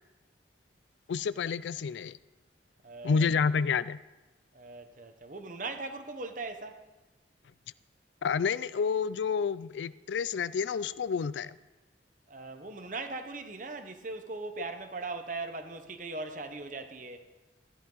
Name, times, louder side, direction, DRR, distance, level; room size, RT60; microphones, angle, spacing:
voice 1, 1.1-2.2 3.0-4.0 8.2-11.5, left 6 dB, 90° left, 0.4 m, -29 dB
voice 2, 2.8-3.3 4.5-6.8 12.3-17.3, right 3 dB, 45° right, 1.0 m, -39 dB
13.5 x 11.0 x 4.0 m
head